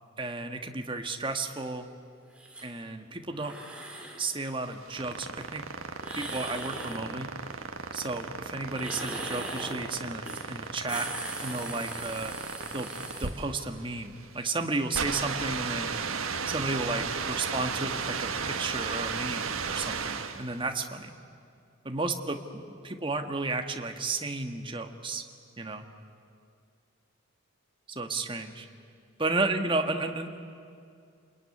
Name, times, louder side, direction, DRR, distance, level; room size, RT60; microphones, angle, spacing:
voice 1, 0.2-1.9 2.6-3.5 4.2-5.6 6.2-7.3 7.9-10.2 10.5-11.1 11.4-12.3 12.7-12.9 13.2-15.9 16.5-21.1 21.8-25.2 25.6-25.8 27.9-28.7 29.2-30.4, right 3 dB, 25° right, 5 dB, 1.4 m, -33 dB
sound 1, 2.4-2.7 3.3-4.2 6.0-7.0 8.7-9.8 10.2-10.5 10.7-13.3, right 2 dB, 5° right, 3.0 m, -39 dB
sound 2, 4.6-20.5, right 5 dB, 80° right, 1.5 m, -35 dB
29.0 x 21.0 x 9.8 m, 2.4 s
head